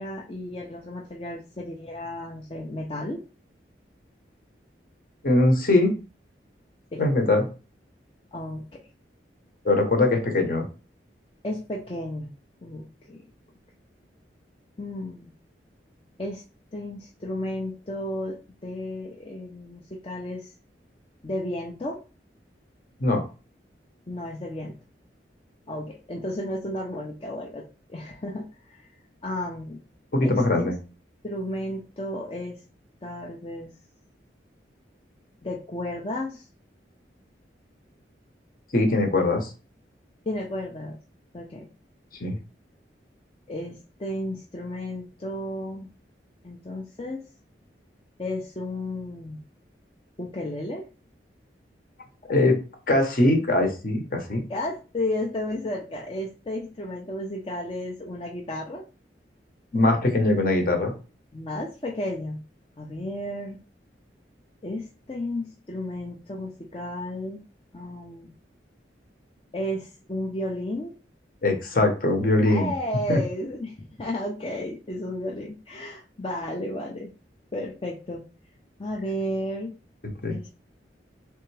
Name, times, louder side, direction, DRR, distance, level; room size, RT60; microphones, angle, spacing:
voice 1, 0.0-3.2 6.9-7.0 8.3-8.8 11.4-12.3 12.6-13.2 14.8-15.3 16.2-16.4 16.7-20.5 21.2-22.0 24.1-24.7 25.7-28.8 29.2-29.8 30.2-30.7 31.2-32.6 33.0-33.7 35.4-36.4 40.3-41.0 41.3-41.7 43.5-45.9 46.4-47.2 48.2-49.4 50.2-50.9 54.5-58.9 61.3-62.4 62.8-63.6 64.6-67.4 67.7-68.3 69.5-70.9 72.4-77.1 77.5-78.2 78.8-79.7 80.3-80.5, left 1 dB, 30° left, -2 dB, 0.6 m, -33 dB
voice 2, 5.2-6.0 7.0-7.5 9.6-10.7 23.0-23.2 30.1-30.7 38.7-39.5 42.2-42.4 52.3-52.6 52.9-54.4 59.7-60.9 71.4-72.7 73.1-73.2 80.2-80.6, left 2 dB, 50° left, 4 dB, 1.0 m, -21 dB
3.4 x 3.4 x 3.3 m, 0.33 s
head